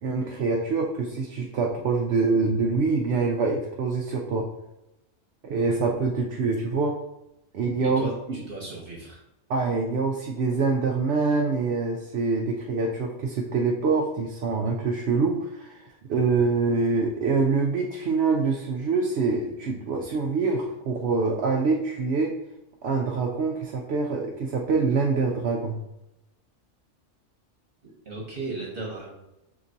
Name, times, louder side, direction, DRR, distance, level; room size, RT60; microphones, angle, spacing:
voice 1, 0.0-4.5 5.4-6.9 7.5-8.0 8.3-8.5 9.5-22.3 22.8-25.8, right 4 dB, 65° right, 0 dB, 0.8 m, -25 dB
voice 2, 8.0-9.2 27.8-29.1, right 2 dB, 50° right, -4 dB, 1.3 m, -36 dB
6.9 x 2.9 x 2.6 m, 0.90 s
omnidirectional pair, 1.3 m